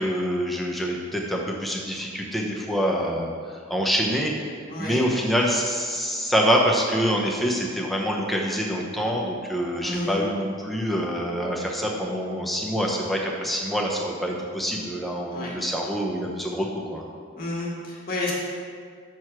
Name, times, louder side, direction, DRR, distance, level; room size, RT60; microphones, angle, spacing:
voice 1, 0.0-4.3 4.8-17.1, equal, ahead, -1 dB, 0.7 m, -26 dB
voice 2, 4.7-5.0 9.8-10.2 15.3-15.5 17.4-18.3, left 2 dB, 45° left, -4 dB, 1.7 m, -30 dB
6.3 x 4.6 x 5.9 m, 2.1 s
head